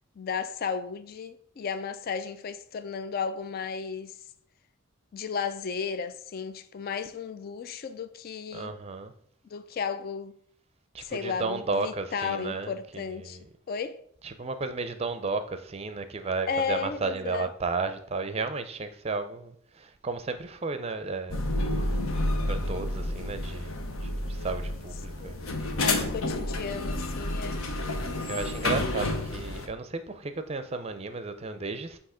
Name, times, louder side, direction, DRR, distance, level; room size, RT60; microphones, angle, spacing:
voice 1, 0.2-4.2 5.1-8.7 9.4-10.3 11.0-13.4 13.7-14.0 16.5-17.5 25.2-27.6 29.0-29.2, left 6 dB, 45° left, 0.3 m, -34 dB
voice 2, 8.5-9.1 10.9-13.4 14.2-21.4 22.5-25.4 28.3-32.0, right 3 dB, 30° right, 0.5 m, -33 dB
sound 1, 21.3-29.7, left 1 dB, 85° left, 0.9 m, -30 dB
8.0 x 2.8 x 4.9 m
head